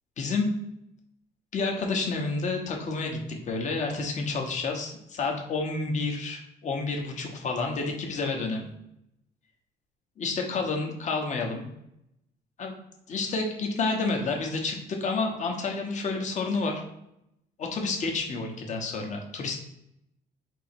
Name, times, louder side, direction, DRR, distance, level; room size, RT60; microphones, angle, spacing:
voice 1, 0.2-0.5 1.5-8.7 10.2-11.7 12.6-12.7 13.1-16.8 17.6-19.6, left 3 dB, 45° left, 2 dB, 1.0 m, -29 dB
3.7 x 2.9 x 4.4 m, 0.81 s
cardioid pair, 110°, 17 cm